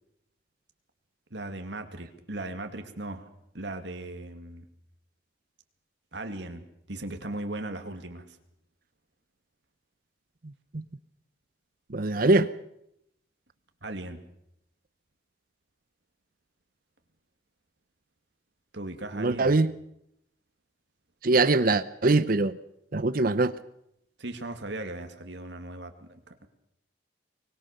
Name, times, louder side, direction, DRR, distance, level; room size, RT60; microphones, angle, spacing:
voice 1, 1.3-3.3 3.5-4.6 6.1-8.4 13.8-14.2 18.7-19.6 24.2-26.5, right 2 dB, 65° right, 2.4 m, -38 dB
voice 2, 11.9-12.5 19.2-19.7 21.2-22.6 22.9-23.5, right 2 dB, 50° right, 0.8 m, -22 dB
24.0 x 20.5 x 6.7 m
head